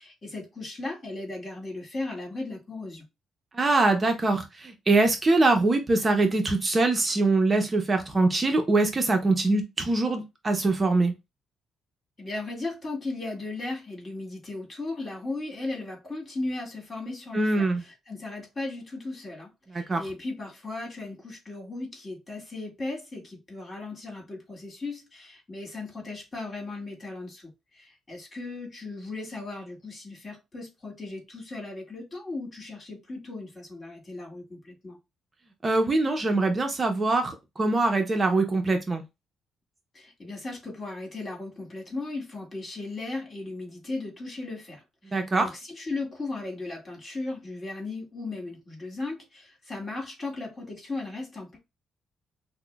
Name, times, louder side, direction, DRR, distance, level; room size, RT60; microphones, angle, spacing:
voice 1, 0.0-3.0 12.2-35.0 39.9-51.6, left 2 dB, 35° left, 1.9 m, -36 dB
voice 2, 3.5-11.1 17.3-17.8 19.9-20.0 35.6-39.0 45.1-45.5, right 2 dB, 30° right, 0.6 m, -23 dB
5.8 x 2.1 x 2.2 m
cardioid pair, 90°, 0 cm